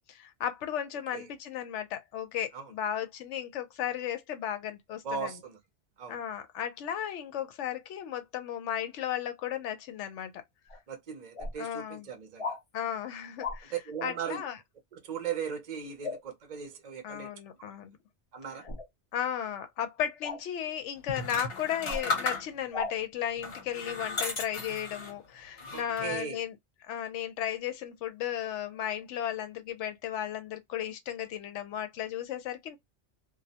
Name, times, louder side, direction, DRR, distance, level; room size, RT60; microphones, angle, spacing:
voice 1, 0.1-5.3 6.1-10.4 11.6-12.1 12.7-13.7 14.0-14.6 17.0-18.0 19.1-26.5 26.9-32.8, left 10 dB, 90° left, 0.9 m, -35 dB
voice 2, 5.0-5.6 6.0-6.2 10.9-12.6 13.7-14.4 14.9-17.3 17.6-17.7 18.3-18.7 25.7-26.4, right 7 dB, 45° right, 0.6 m, -38 dB
sound 1, 10.7-10.8 11.3-11.5 12.4-12.6 13.4-13.6 16.0-16.2 18.6-18.9 20.2-20.4 21.8-22.1 22.7-22.9 24.2-24.3, left 3 dB, 45° left, 0.5 m, -35 dB
sound 2, 21.1-22.8 23.4-25.2 25.6-26.2, left 3 dB, 60° left, 1.1 m, -35 dB
2.3 x 2.0 x 2.7 m
omnidirectional pair, 1.2 m